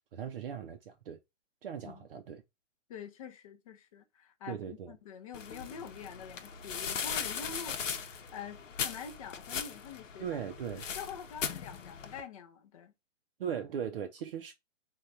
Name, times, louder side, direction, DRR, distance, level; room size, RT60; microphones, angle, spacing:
voice 1, 0.1-1.2 1.6-2.4 4.5-4.9 10.2-10.8 13.4-14.5, right 8 dB, 50° right, 0.5 m, -38 dB
voice 2, 2.9-4.6 4.9-10.4 10.8-12.9, left 7 dB, 30° left, 0.5 m, -46 dB
sound 1, 5.3-12.2, left 6 dB, 85° left, 0.8 m, -39 dB
3.6 x 2.3 x 4.1 m
hypercardioid pair, 145°, 37 cm